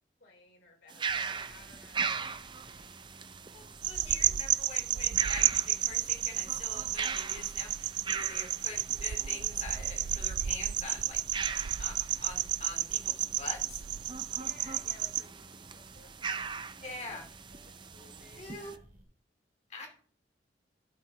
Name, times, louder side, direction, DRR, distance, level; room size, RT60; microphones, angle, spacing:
voice 1, 0.2-3.0 4.0-4.3 4.6-5.3 14.2-16.5 16.8-17.2 17.5-18.8 19.8-20.0, left 3 dB, 85° left, -1 dB, 4.9 m, -58 dB
sound 1, 0.9-18.8, right 5 dB, 25° right, 0.5 m, -40 dB
sound 2, 1.1-19.0, equal, 50° right, 2.4 m, -57 dB
voice 2, 3.5-11.2 11.5-13.8 16.8-17.2 18.4-18.7 19.7-19.9, left 3 dB, 40° left, 3 dB, 2.9 m, -45 dB
sound 3, 3.8-15.2, right 13 dB, 80° right, 0.4 m, -32 dB
12.0 x 5.7 x 4.9 m, 0.43 s
head